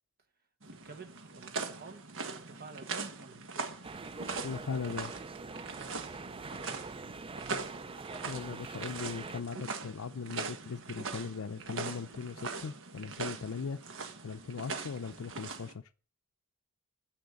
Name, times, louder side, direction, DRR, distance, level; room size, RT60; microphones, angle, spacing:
sound 1, 0.6-15.7, right 4 dB, 60° right, 1.5 m, -41 dB
voice 1, 0.8-3.8 6.5-6.9 7.3-7.7, right 3 dB, 45° right, 1.3 m, -50 dB
sound 2, 3.8-9.4, right 4 dB, 25° right, 0.5 m, -44 dB
voice 2, 4.4-5.1 8.3-13.8 14.2-15.9, left 5 dB, 65° left, 0.5 m, -39 dB
10.5 x 7.9 x 8.2 m
head